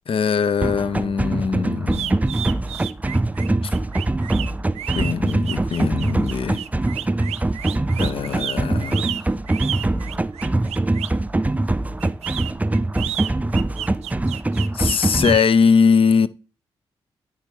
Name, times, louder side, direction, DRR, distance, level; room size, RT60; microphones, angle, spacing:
voice 1, 0.1-2.2 3.6-3.8 4.9-6.6 8.0-9.2 14.7-16.3, left 6 dB, 55° left, 0.5 m, -21 dB
sound 1, 0.6-15.4, right 2 dB, 15° right, 0.4 m, -23 dB
sound 2, 1.9-11.2 12.0-15.5, right 11 dB, 75° right, 0.4 m, -32 dB
9.4 x 3.6 x 4.5 m
supercardioid pair, 45°, 11 cm